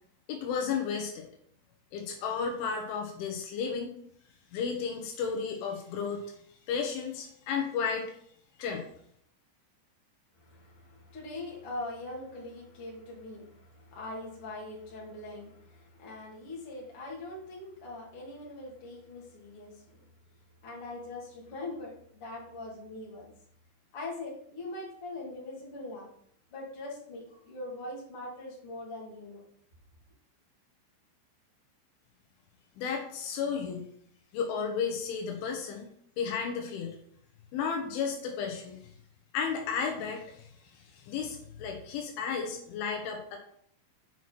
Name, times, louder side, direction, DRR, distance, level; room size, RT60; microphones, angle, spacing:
voice 1, 0.3-1.3 1.9-3.9 4.5-6.3 6.7-8.1 8.6-8.8 32.8-33.9 34.3-35.9 36.2-36.9 37.5-38.8 39.3-43.4, left 6 dB, 75° left, 2 dB, 3.6 m, -33 dB
voice 2, 10.4-20.1 20.6-23.3 23.9-26.1 26.5-29.4, left 2 dB, 35° left, -4 dB, 2.7 m, -42 dB
9.1 x 6.2 x 4.2 m, 0.65 s
omnidirectional pair, 5.7 m